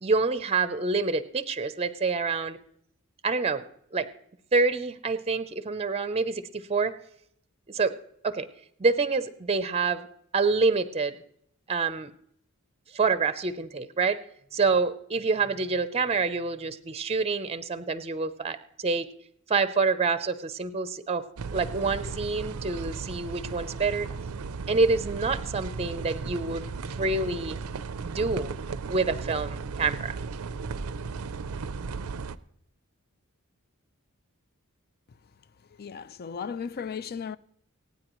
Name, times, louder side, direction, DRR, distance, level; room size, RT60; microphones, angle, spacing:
voice 1, 0.0-2.6 3.2-3.6 3.9-4.1 4.5-7.0 7.7-7.9 8.2-8.5 8.8-10.1 10.3-11.2 11.7-12.1 12.9-14.2 14.5-19.1 19.5-21.2 21.5-24.1 24.7-26.6 27.0-27.6 28.0-28.5 28.9-30.2, right 4 dB, 30° right, 0.6 m, -27 dB
sound 1, 21.4-32.4, right 4 dB, 75° right, 0.5 m, -36 dB
voice 2, 35.8-37.4, left 6 dB, 45° left, 0.4 m, -35 dB
25.0 x 9.5 x 3.0 m
head